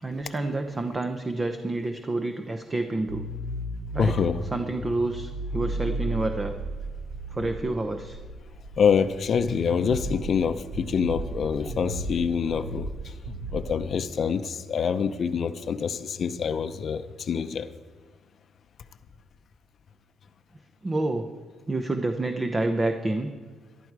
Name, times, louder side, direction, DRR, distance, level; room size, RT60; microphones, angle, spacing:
voice 1, 0.0-3.3 3.9-6.5 7.3-8.2 20.8-21.3 21.7-23.3, right 2 dB, 25° right, 7 dB, 0.9 m, -28 dB
sound 1, 3.1-13.8, right 2 dB, 85° right, 2.2 m, -35 dB
voice 2, 4.0-4.4 8.8-13.1 13.5-17.7, left 6 dB, 55° left, 10 dB, 0.7 m, -26 dB
14.0 x 11.5 x 4.8 m, 1.5 s
cardioid pair, 90°, 0 cm